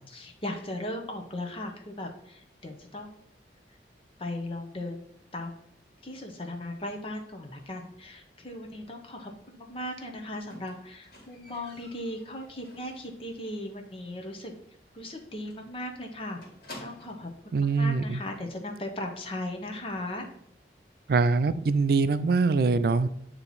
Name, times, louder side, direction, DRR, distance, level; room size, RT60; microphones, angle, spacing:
voice 1, 0.1-3.2 4.2-5.1 5.3-5.6 6.0-14.5 14.9-16.4 16.8-20.3, left 1 dB, 30° left, 3 dB, 0.8 m, -37 dB
Squeak, 10.5-13.3 13.6-14.0 14.3-14.4 14.8-14.9 15.1-15.3 15.5-17.3 18.2-18.3, left 1 dB, 55° left, 1.9 m, -50 dB
voice 2, 17.5-18.2 21.1-23.1, right 4 dB, 60° right, 14 dB, 0.4 m, -23 dB
8.7 x 2.9 x 4.1 m, 0.72 s
head